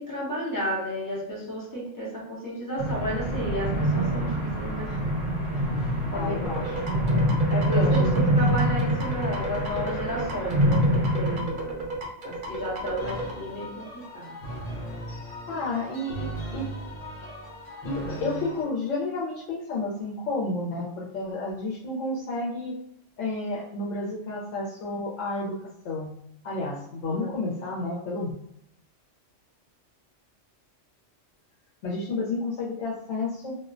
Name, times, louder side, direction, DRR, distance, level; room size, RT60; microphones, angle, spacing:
voice 1, 0.0-5.0 6.1-7.2 7.5-11.8 12.2-13.8 14.1-14.3 27.1-27.3, equal, 20° left, -6 dB, 0.7 m, -32 dB
sound 1, 2.8-11.4, right 1 dB, 35° right, 1.1 m, -25 dB
voice 2, 6.1-6.9 7.7-8.0 15.5-16.7 17.8-22.8 23.2-25.6 25.8-26.1 26.4-28.3 31.8-33.6, left 2 dB, 80° left, -6 dB, 0.9 m, -31 dB
sound 2, 6.4-13.3, right 2 dB, 55° right, 0.6 m, -34 dB
sound 3, 13.0-18.6, right 1 dB, 50° left, 1.1 m, -37 dB
2.4 x 2.1 x 2.5 m, 0.74 s
omnidirectional pair, 1.3 m